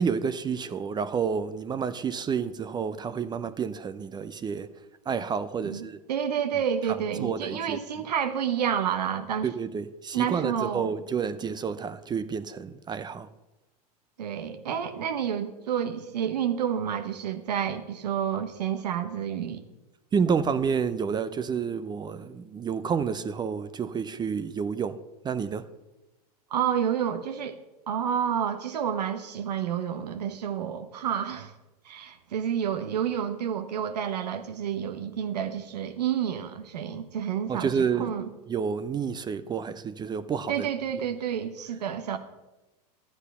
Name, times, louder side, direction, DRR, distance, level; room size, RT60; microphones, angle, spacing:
voice 1, 0.0-4.7 5.1-6.0 6.8-7.8 9.4-13.3 20.1-25.7 37.5-38.1 38.5-40.7, right 6 dB, 20° right, 0.6 m, -29 dB
voice 2, 5.6-9.5 10.1-10.9 14.2-19.6 26.5-27.6 27.9-31.5 31.8-37.7 38.0-38.3 40.5-42.2, right 8 dB, 85° right, 1.0 m, -29 dB
12.5 x 8.2 x 5.5 m
hypercardioid pair, 105°, 20 cm